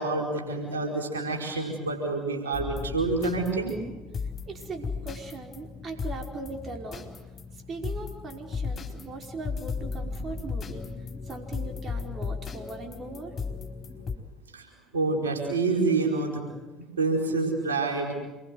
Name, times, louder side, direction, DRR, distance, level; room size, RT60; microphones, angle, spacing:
voice 1, 0.0-3.8 14.5-14.7 14.9-16.4 17.0-18.1, right 3 dB, 85° right, 1 dB, 4.8 m, -27 dB
sound 1, 2.5-14.2, left 5 dB, 35° left, 4.4 m, -36 dB
voice 2, 4.5-7.1 7.5-13.4, right 3 dB, 40° right, 3 dB, 5.1 m, -39 dB
28.0 x 22.5 x 7.9 m, 1.2 s
hypercardioid pair, 65°, 0 cm